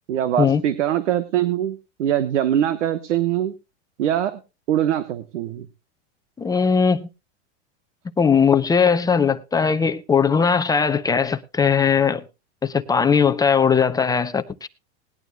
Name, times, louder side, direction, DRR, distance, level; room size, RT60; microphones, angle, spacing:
voice 1, 0.1-3.5 4.0-4.4 4.7-5.7, right 11 dB, 85° right, 1.2 m, -22 dB
voice 2, 6.4-7.1 8.2-12.2 12.6-14.7, left 6 dB, 10° left, 0.6 m, -19 dB
20.0 x 11.0 x 2.3 m
supercardioid pair, 135°, 35 cm